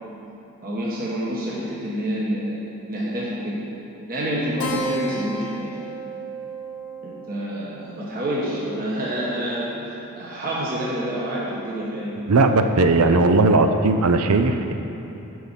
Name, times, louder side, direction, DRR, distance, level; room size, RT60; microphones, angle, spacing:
voice 1, 0.6-3.6 4.1-5.7 7.0-12.2, equal, 40° right, -6 dB, 1.3 m, -28 dB
Keyboard (musical), 4.6-9.6, right 2 dB, 75° left, 1.0 m, -34 dB
voice 2, 12.3-14.7, right 3 dB, 80° right, 7 dB, 0.6 m, -17 dB
7.7 x 5.5 x 7.5 m, 2.9 s
head